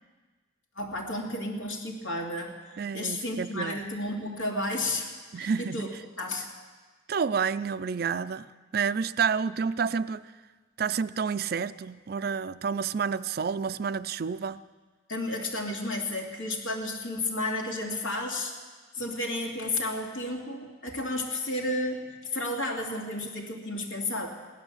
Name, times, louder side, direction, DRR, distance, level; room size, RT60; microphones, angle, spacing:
voice 1, 0.8-2.6 2.9-5.9 6.2-6.5 15.1-18.5 18.9-24.3, left 1 dB, 80° left, 1 dB, 2.4 m, -32 dB
voice 2, 2.8-3.8 5.3-5.9 7.1-8.5 8.7-10.3 10.8-14.6, right 6 dB, 50° right, 15 dB, 0.4 m, -29 dB
17.0 x 11.5 x 7.3 m, 1.4 s
head